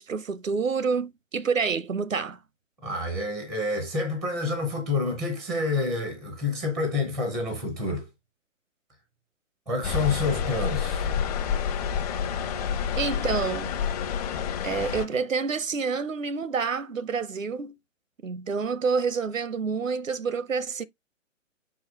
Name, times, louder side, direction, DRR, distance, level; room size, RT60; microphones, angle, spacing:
voice 1, 0.0-2.4 13.0-13.7 14.6-17.8 18.2-20.8, right 5 dB, 85° right, 0.7 m, -28 dB
voice 2, 2.8-8.1 9.7-11.1, left 3 dB, ahead, 0.5 m, -28 dB
sound 1, 9.8-15.1, left 7 dB, 30° left, 0.9 m, -28 dB
5.7 x 4.7 x 3.5 m
figure-of-eight pair, 130°, 39 cm